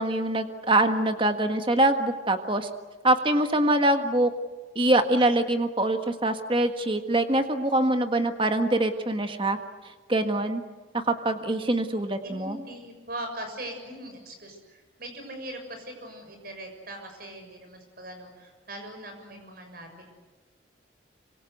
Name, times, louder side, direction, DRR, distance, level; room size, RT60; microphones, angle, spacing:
voice 1, 0.0-2.7 3.0-4.3 4.7-9.6 10.1-10.6 10.9-12.6, right 1 dB, 25° right, 7 dB, 1.6 m, -24 dB
voice 2, 12.2-20.1, right 1 dB, 50° right, 5 dB, 6.8 m, -40 dB
26.5 x 25.5 x 8.1 m, 1.3 s
head